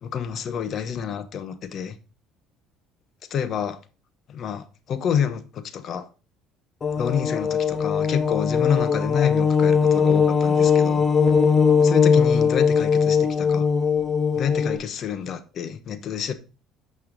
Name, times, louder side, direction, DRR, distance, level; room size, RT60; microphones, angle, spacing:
voice 1, 0.0-2.0 3.3-3.8 4.3-6.0 7.0-11.1 11.8-13.7 14.3-16.3, left 8 dB, 55° left, 1.1 m, -28 dB
sound 1, 6.8-14.8, left 6 dB, 35° left, 1.1 m, -20 dB
9.0 x 5.5 x 3.9 m
supercardioid pair, 90°, 0 cm